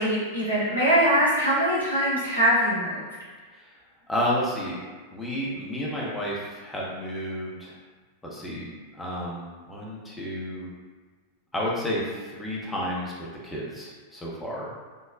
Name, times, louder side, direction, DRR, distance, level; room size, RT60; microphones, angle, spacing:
voice 1, 0.0-3.0, right 1 dB, 90° right, -9 dB, 1.0 m, -22 dB
voice 2, 4.1-4.8 5.1-7.8 8.2-8.7 8.9-10.7 11.5-13.1 13.4-14.7, equal, 10° left, -5 dB, 0.6 m, -31 dB
3.1 x 2.0 x 2.5 m, 1.4 s
figure-of-eight pair, 90°, 0 cm